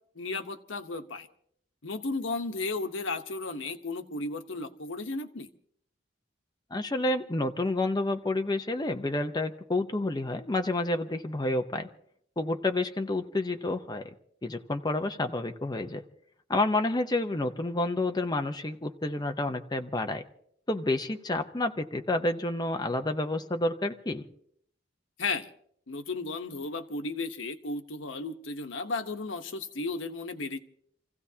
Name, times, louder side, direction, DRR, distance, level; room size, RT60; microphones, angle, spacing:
voice 1, 0.1-1.3 1.8-5.5 25.2-25.5 25.9-30.6, left 3 dB, 90° left, 8 dB, 1.0 m, -34 dB
voice 2, 6.7-11.9 12.4-14.0 14.4-16.0 16.5-20.2 20.7-24.2, left 2 dB, 20° left, 5 dB, 0.8 m, -29 dB
29.0 x 16.0 x 2.8 m, 0.66 s
head